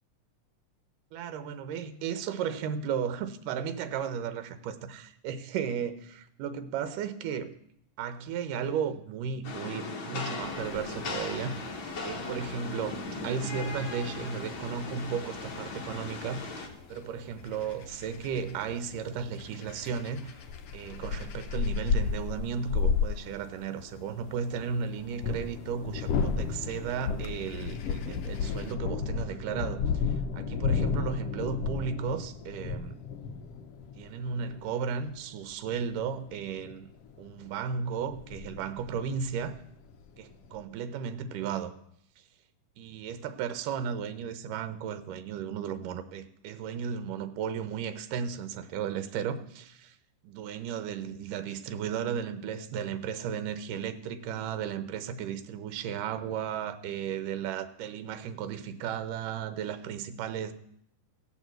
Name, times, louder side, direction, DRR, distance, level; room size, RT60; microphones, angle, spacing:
voice 1, 1.1-7.5 8.0-20.5 20.7-32.9 34.0-36.9 37.2-39.6 40.2-41.7 42.8-50.0 50.2-60.5, right 7 dB, 80° right, 2.5 m, -35 dB
Rain, 9.4-16.7, left 3 dB, 45° left, 2.0 m, -38 dB
sound 1, 10.4-28.7, left 5 dB, 85° left, 1.2 m, -37 dB
sound 2, 22.8-22.9 25.0-40.6, left 5 dB, 70° left, 1.5 m, -33 dB
16.5 x 7.1 x 7.7 m
omnidirectional pair, 3.8 m